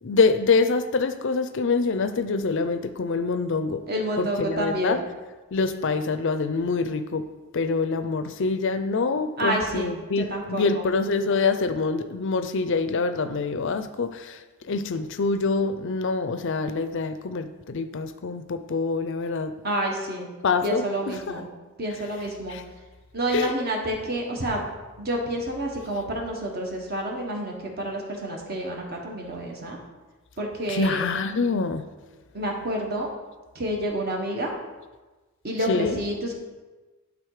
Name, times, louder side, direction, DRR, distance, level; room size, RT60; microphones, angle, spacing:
voice 1, 0.0-3.8 4.2-5.0 5.5-7.3 7.5-19.5 20.4-21.4 22.5-22.6 23.3-23.5 30.7-31.8 35.7-36.0, left 4 dB, 55° left, 11 dB, 0.5 m, -25 dB
voice 2, 3.9-5.0 9.4-9.9 10.2-10.9 19.6-20.3 20.6-21.5 21.8-22.6 23.1-24.6 25.0-29.8 30.4-31.0 32.3-33.1 33.5-34.5 35.4-36.3, right 1 dB, 45° right, 0 dB, 1.4 m, -29 dB
11.0 x 4.0 x 4.9 m, 1.2 s
head